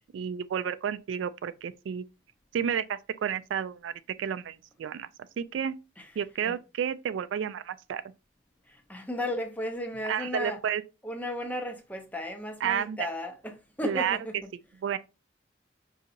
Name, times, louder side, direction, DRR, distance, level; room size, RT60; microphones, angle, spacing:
voice 1, 0.1-2.0 2.5-3.9 4.2-5.1 5.4-5.8 6.2-8.0 10.1-10.8 12.6-13.0 13.8-14.2 14.8-15.0, right 8 dB, 80° right, 0.3 m, -31 dB
voice 2, 6.0-6.6 8.7-10.6 11.0-14.5, left 1 dB, 10° left, 0.6 m, -35 dB
5.1 x 2.7 x 2.5 m
head